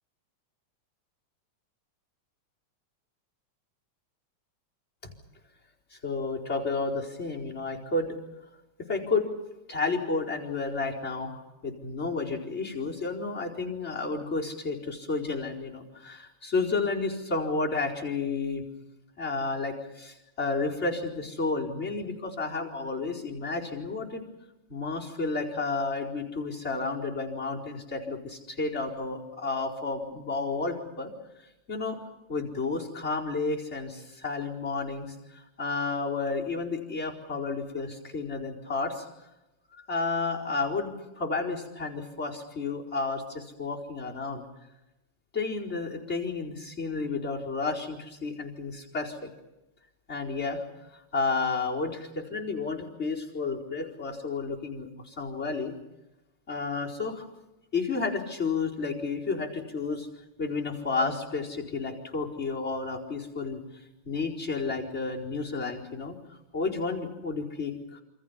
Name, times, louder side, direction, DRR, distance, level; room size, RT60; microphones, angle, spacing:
voice 1, 5.9-8.2 8.8-9.3 9.7-18.6 19.2-24.2 24.7-31.1 31.7-32.0 32.3-39.1 39.7-44.4 45.3-49.3 50.1-50.6 51.1-55.7 56.5-57.2 57.7-60.1 60.4-63.6 64.0-66.2 66.5-68.0, left 4 dB, 20° left, -3 dB, 4.7 m, -31 dB
28.0 x 26.0 x 5.7 m, 0.96 s
omnidirectional pair, 3.3 m